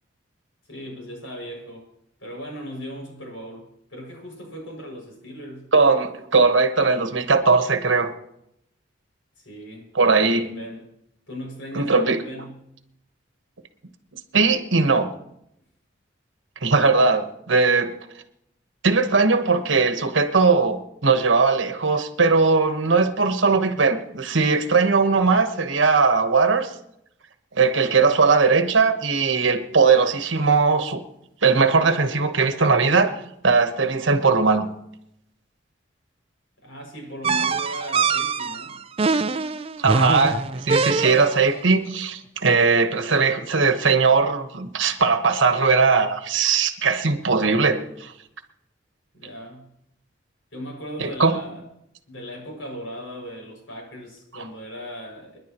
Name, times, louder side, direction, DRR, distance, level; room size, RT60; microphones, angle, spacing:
voice 1, 0.7-1.9 2.2-5.7 9.4-10.9 11.3-12.6 36.6-38.8 49.1-49.7 50.5-51.6 52.1-55.4, equal, 85° left, 6.2 m, -38 dB
voice 2, 5.7-8.1 9.9-10.5 11.7-12.2 14.3-15.1 16.6-17.9 18.8-26.7 27.6-31.0 31.4-33.2 33.4-34.7 39.8-48.1 51.0-51.4, right 4 dB, 80° right, 1.2 m, -19 dB
sound 1, 37.2-41.5, right 4 dB, 30° right, 0.5 m, -23 dB
29.0 x 10.5 x 3.0 m
head